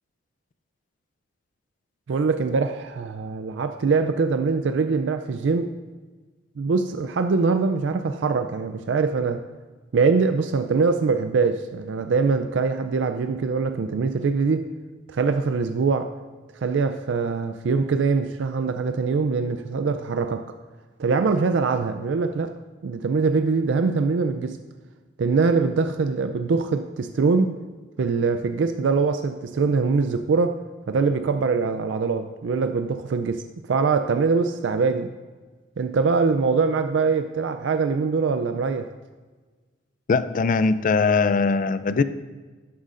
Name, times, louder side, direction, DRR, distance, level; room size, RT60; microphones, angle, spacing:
voice 1, 2.1-5.7 6.6-9.4 9.9-14.7 15.1-16.1 16.6-20.5 21.0-22.5 22.8-24.6 25.2-27.6 28.0-30.6 30.9-33.4 33.7-35.1 35.8-38.9, right 4 dB, 75° right, 8 dB, 0.4 m, -23 dB
voice 2, 40.1-42.0, left 4 dB, 45° left, 13 dB, 0.4 m, -21 dB
12.5 x 9.4 x 2.5 m, 1.4 s
head